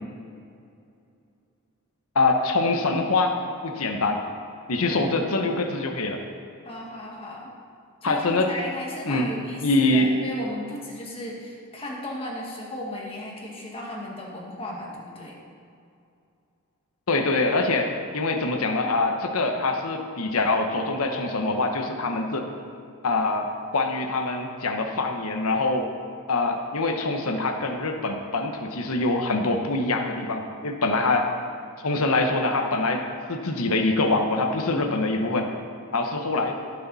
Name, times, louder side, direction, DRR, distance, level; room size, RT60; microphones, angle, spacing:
voice 1, 2.1-3.4 3.6-4.2 4.7-6.2 8.0-8.5 9.1-9.3 9.6-10.1 17.1-22.5 23.0-25.9 26.3-31.3 31.8-33.0 33.3-35.5 35.9-36.5, left 2 dB, 80° left, 4 dB, 1.0 m, -24 dB
voice 2, 4.8-5.5 6.6-7.6 8.0-15.4, left 1 dB, 25° left, -2 dB, 1.8 m, -35 dB
17.0 x 6.6 x 4.1 m, 2.5 s
head